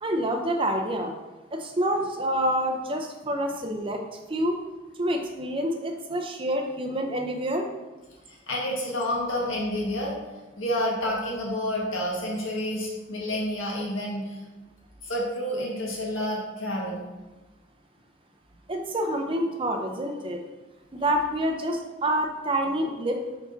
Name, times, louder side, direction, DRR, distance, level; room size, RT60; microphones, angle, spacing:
voice 1, 0.0-1.2 1.5-4.0 4.3-4.6 5.0-7.7 18.7-20.4 20.9-23.2, right 1 dB, 25° right, 3 dB, 0.5 m, -27 dB
voice 2, 8.3-10.2 10.6-14.4 15.0-17.0, left 1 dB, 70° left, -3 dB, 1.6 m, -29 dB
5.8 x 4.8 x 3.9 m, 1.2 s
head